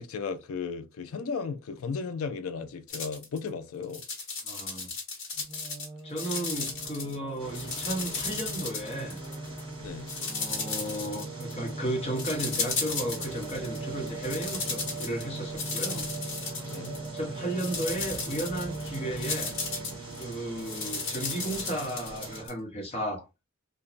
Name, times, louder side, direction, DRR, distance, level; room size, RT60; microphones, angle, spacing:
voice 1, 0.0-4.0 9.8-10.1 16.7-17.0, left 5 dB, 85° left, 0.4 m, -35 dB
sound 1, 2.9-3.4 3.8-5.9 6.2-7.2 7.5-9.6 10.1-11.7 12.2-13.8 14.1-17.2 17.5-22.5, left 4 dB, 65° left, 1.1 m, -35 dB
voice 2, 4.4-4.9 6.0-9.2 10.2-16.1 17.1-19.5 20.2-23.3, right 1 dB, 30° left, 1.0 m, -34 dB
Singing, 5.4-22.5, right 3 dB, 40° right, 0.9 m, -40 dB
sound 2, 7.4-22.4, right 1 dB, 25° right, 1.5 m, -46 dB
3.0 x 2.2 x 2.4 m
head